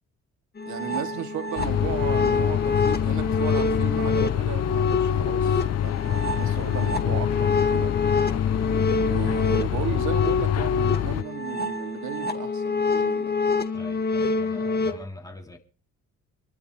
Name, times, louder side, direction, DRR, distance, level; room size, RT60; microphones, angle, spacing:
sound 1, 0.6-14.9, left 4 dB, 35° left, 2.2 m, -26 dB
voice 1, 0.7-7.9 9.0-13.4, right 9 dB, 75° right, 2.8 m, -35 dB
sound 2, 1.6-11.2, left 11 dB, 55° left, 0.7 m, -26 dB
voice 2, 13.7-15.6, left 2 dB, 10° left, 3.6 m, -42 dB
26.5 x 12.5 x 3.4 m
cardioid pair, 90°, 30 cm